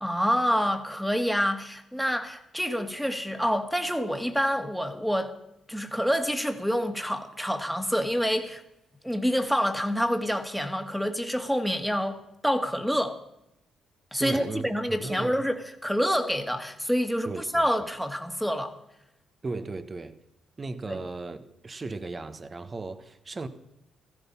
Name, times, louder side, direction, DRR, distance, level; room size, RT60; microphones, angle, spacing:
voice 1, 0.0-5.3 5.7-8.6 9.0-13.2 14.1-18.7 20.9-21.0, equal, ahead, 2.0 m, -27 dB
voice 2, 14.2-15.4 17.2-17.7 19.4-20.2 20.6-23.5, right 3 dB, 30° right, 1.4 m, -36 dB
15.5 x 15.0 x 5.6 m
cardioid pair, 90°, 0 cm